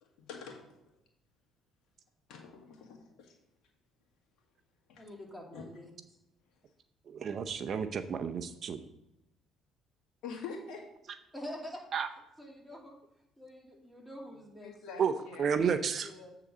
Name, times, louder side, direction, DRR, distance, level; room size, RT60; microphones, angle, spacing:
voice 1, 0.0-0.6 2.3-3.3 4.9-5.0 5.5-5.6 10.2-10.8 14.6-15.5, left 5 dB, 75° left, 1 dB, 1.8 m, -45 dB
voice 2, 5.0-5.9 7.0-7.2 11.3-11.8 12.4-13.0 13.4-14.7 16.0-16.3, left 1 dB, ahead, -2 dB, 2.4 m, -46 dB
voice 3, 7.1-8.8 11.9-12.1 15.0-15.1 15.4-16.1, right 7 dB, 55° right, 10 dB, 0.6 m, -31 dB
8.2 x 3.8 x 6.2 m, 0.88 s
supercardioid pair, 75°, 0 cm